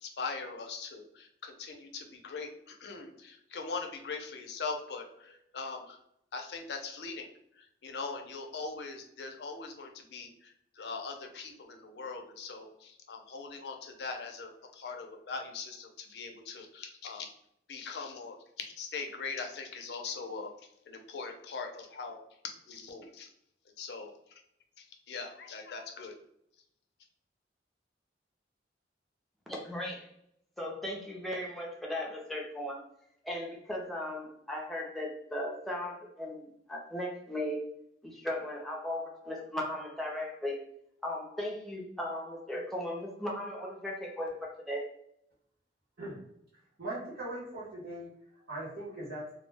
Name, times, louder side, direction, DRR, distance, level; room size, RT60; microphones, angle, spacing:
voice 1, 0.0-6.0 6.3-7.3 7.8-10.3 10.8-17.3 17.7-18.4 18.8-20.5 20.9-22.2 22.4-23.3 23.8-24.1 25.1-26.1, left 4 dB, 65° left, 4 dB, 0.5 m, -41 dB
voice 2, 29.5-30.1 30.6-32.8 33.2-37.6 38.0-40.6 41.0-44.9, left 1 dB, ahead, -3 dB, 0.5 m, -37 dB
voice 3, 46.8-48.1 48.5-49.3, right 1 dB, 65° right, -10 dB, 0.9 m, -39 dB
2.2 x 2.1 x 3.2 m, 0.74 s
head